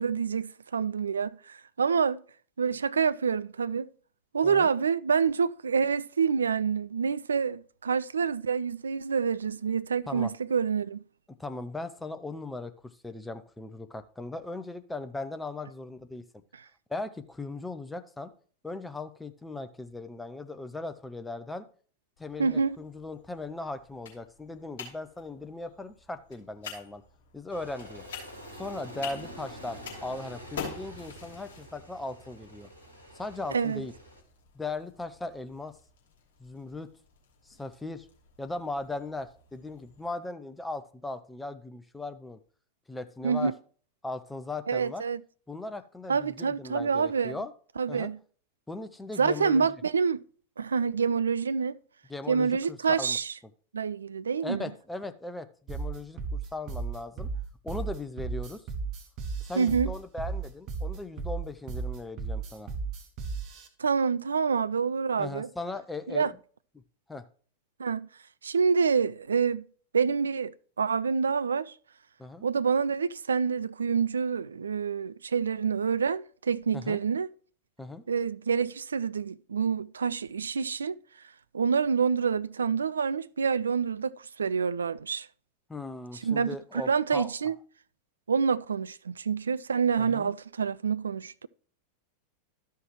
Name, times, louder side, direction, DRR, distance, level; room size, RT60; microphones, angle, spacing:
voice 1, 0.0-2.2 2.6-3.9 4.3-11.0 22.4-22.8 33.5-33.8 43.2-43.5 44.7-45.2 46.1-47.4 47.8-48.2 49.2-50.2 50.6-51.7 52.3-53.3 53.7-54.7 59.6-59.9 63.8-65.5 66.1-66.3 67.8-68.1 68.4-69.6 69.9-71.7 72.4-77.3 78.1-81.0 81.5-85.3 86.2-87.6 88.3-91.5, right 6 dB, 70° right, 0.3 m, -27 dB
voice 2, 11.4-12.7 13.0-16.2 16.9-18.3 18.6-21.7 22.2-27.0 27.3-28.0 28.5-32.7 33.1-33.9 34.5-35.8 36.4-36.9 37.5-38.1 38.4-42.4 42.9-43.5 44.0-45.0 45.5-47.5 47.9-48.1 48.7-49.8 52.1-53.2 54.4-57.3 57.6-58.6 59.4-62.7 65.2-66.4 67.1-67.2 72.2-72.5 76.7-77.0 77.8-78.0 85.7-87.3 90.0-90.3, left 2 dB, 5° left, 0.6 m, -38 dB
sound 1, 22.2-40.0, left 6 dB, 55° left, 3.0 m, -48 dB
Aircraft, 27.5-34.2, equal, 90° right, 1.7 m, -46 dB
sound 2, 55.7-63.7, right 4 dB, 40° right, 1.3 m, -34 dB
12.5 x 5.7 x 3.0 m
figure-of-eight pair, 90°, 0 cm